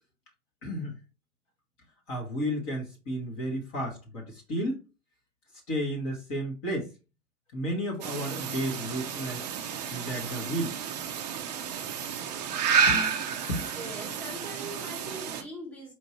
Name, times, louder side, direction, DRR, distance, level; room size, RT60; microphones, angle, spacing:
voice 1, 0.6-1.0 2.1-4.8 5.7-6.9 7.5-9.5 9.9-10.8 12.9-13.2 13.5-13.6, equal, 30° left, 1.1 m, -32 dB
sound 1, 8.0-15.4, right 6 dB, 30° right, 0.4 m, -31 dB
voice 2, 13.7-15.9, right 1 dB, 5° left, 1.2 m, -41 dB
4.5 x 2.5 x 3.0 m
hypercardioid pair, 120°, 46 cm